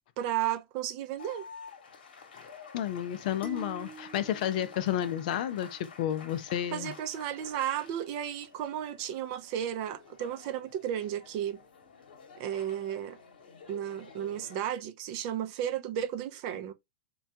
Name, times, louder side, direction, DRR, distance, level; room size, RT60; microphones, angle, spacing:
voice 1, 0.2-1.4 6.7-11.6 12.4-13.2 13.7-16.7, right 10 dB, 45° right, 0.5 m, -33 dB
sound 1, 1.2-14.6, left 6 dB, 80° left, 1.0 m, -51 dB
voice 2, 2.7-6.9, left 11 dB, 55° left, 0.4 m, -31 dB
sound 2, 3.4-5.8, right 2 dB, 25° left, 0.7 m, -47 dB
3.2 x 2.3 x 2.7 m
hypercardioid pair, 120°, 5 cm